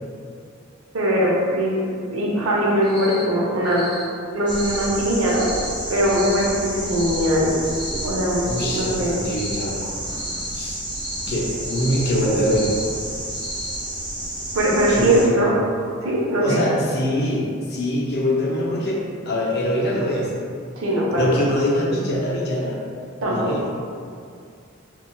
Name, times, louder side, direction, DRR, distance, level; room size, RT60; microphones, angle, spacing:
voice 1, 0.9-3.8 4.3-5.5 5.9-7.5 8.0-9.1 14.5-15.5 16.0-16.6 20.8-21.4 23.2-23.5, equal, 75° right, -4 dB, 0.7 m, -21 dB
Cricket, 2.8-3.2 3.6-4.0 4.4-4.8 5.3-5.6 6.0-6.4 6.9-7.2 7.6-8.0 8.4-8.8 9.2-9.6 10.0-10.4 10.9-11.2 11.6-12.0 12.4-12.8 13.3-13.7, left 1 dB, 10° left, 1.4 m, -36 dB
sound 1, 4.5-15.2, right 1 dB, 20° right, 0.6 m, -30 dB
voice 2, 8.4-9.9 10.5-10.8 11.3-12.7 14.9-15.6 16.4-20.3 21.2-22.8 23.3-23.6, left 1 dB, 50° left, -3 dB, 0.5 m, -23 dB
4.0 x 2.2 x 2.3 m, 2.3 s
head